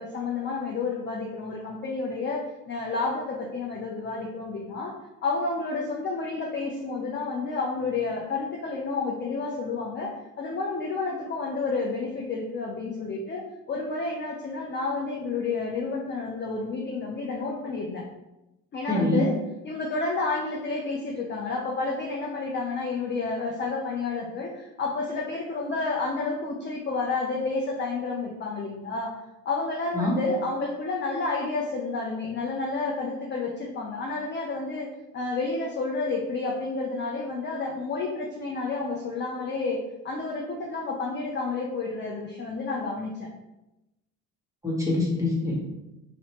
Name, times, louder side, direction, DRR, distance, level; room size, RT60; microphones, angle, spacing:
voice 1, 0.0-4.9 5.2-18.1 18.7-19.3 19.6-29.1 29.5-34.9 35.1-39.8 40.0-43.3, left 3 dB, 30° left, -1 dB, 0.4 m, -30 dB
voice 2, 18.9-19.2 29.9-30.2 44.6-45.6, left 2 dB, 10° right, -4 dB, 1.1 m, -24 dB
2.7 x 2.0 x 2.9 m, 0.96 s
supercardioid pair, 75°, 40 cm